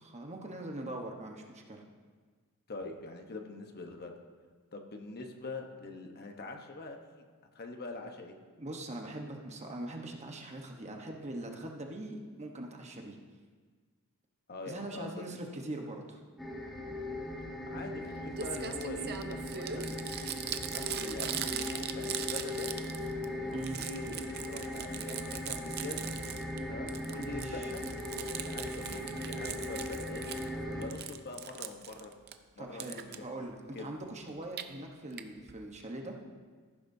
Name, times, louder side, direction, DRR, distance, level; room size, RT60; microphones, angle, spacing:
voice 1, 0.0-1.8 8.6-13.2 14.7-16.2 23.5-23.8 27.2-27.7 32.6-36.2, right 1 dB, 30° right, 2 dB, 1.1 m, -42 dB
voice 2, 2.7-4.1 4.7-7.2 7.5-8.4 14.5-15.2 17.7-20.0 20.7-22.7 23.4-26.1 26.7-27.8 28.4-30.4 30.7-32.1 32.6-33.4 33.7-33.9, left 2 dB, 45° left, 4 dB, 1.0 m, -44 dB
sound 1, 16.4-30.9, left 1 dB, ahead, 1.5 m, -39 dB
Crumpling crinkling, 18.0-18.1 18.4-23.3 23.5-26.6 26.9-30.5 30.8-32.3 32.8-33.2 34.3-34.6 35.2-35.3 35.5-35.6 35.8-35.9, right 9 dB, 45° right, 0.6 m, -40 dB
14.5 x 11.5 x 2.7 m, 1.5 s
head